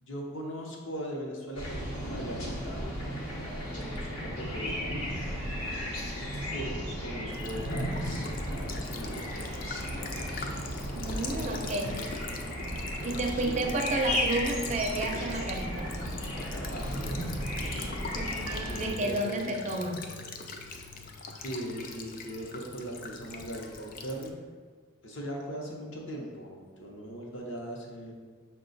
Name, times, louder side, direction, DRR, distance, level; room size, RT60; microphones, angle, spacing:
voice 1, 0.0-2.8 3.8-5.2 5.5-10.5 11.1-12.2 13.4-13.7 16.3-17.9 18.7-19.5 20.6-20.9 21.4-24.3 25.0-28.1, right 1 dB, 60° left, -1 dB, 0.8 m, -40 dB
sound 1, 1.5-18.9, equal, 80° left, 1.0 m, -35 dB
Child speech kid speaking / Bird vocalization bird call bird song / Stream, 7.3-24.3, left 4 dB, 40° left, 0.3 m, -42 dB
voice 2, 10.9-11.9 13.0-15.9 18.0-20.0, right 2 dB, 30° right, 2 dB, 0.4 m, -31 dB
sound 2, 18.5-20.6, right 4 dB, 85° right, 0.6 m, -47 dB
5.7 x 2.3 x 3.8 m, 1.5 s
head